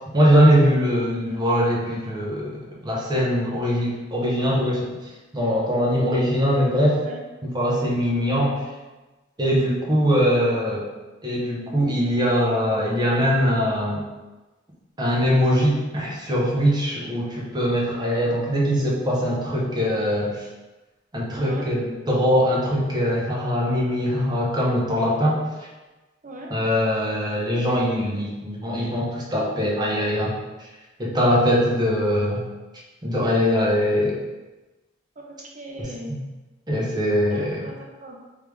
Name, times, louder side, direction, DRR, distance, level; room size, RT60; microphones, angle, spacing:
voice 1, 0.1-4.9 5.3-7.0 7.4-8.7 9.4-10.9 11.2-14.0 15.0-20.5 21.1-25.4 26.5-30.4 31.0-32.5 33.0-34.2 36.1-36.2 36.7-37.6, equal, 25° right, -4 dB, 0.9 m, -22 dB
voice 2, 21.4-21.7 26.2-26.6 35.2-36.2 37.3-38.2, right 1 dB, 45° right, -1 dB, 0.7 m, -38 dB
3.3 x 3.3 x 3.4 m, 1.1 s
head